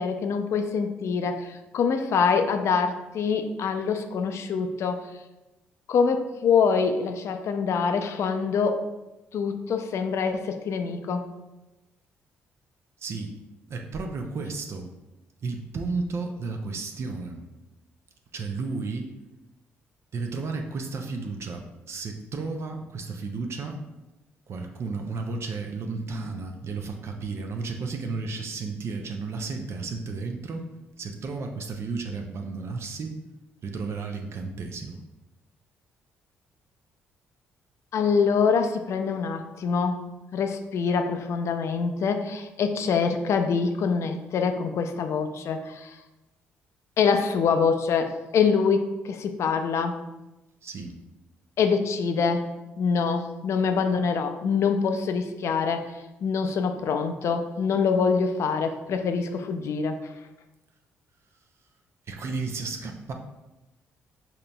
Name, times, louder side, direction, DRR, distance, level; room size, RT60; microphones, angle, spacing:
voice 1, 0.0-5.1 5.9-8.8 9.3-11.3 37.9-40.0 40.3-45.9 47.0-50.0 51.6-52.5 52.8-55.9 56.2-60.0, left 5 dB, 60° left, 7 dB, 0.4 m, -25 dB
voice 2, 13.0-13.3 13.7-14.9 15.4-17.4 18.3-19.1 20.1-23.8 24.5-30.7 31.0-33.2 33.6-35.0 50.6-50.9 62.1-63.1, right 4 dB, 55° right, 4 dB, 0.5 m, -33 dB
4.8 x 2.8 x 2.2 m, 1.0 s
hypercardioid pair, 50°, 5 cm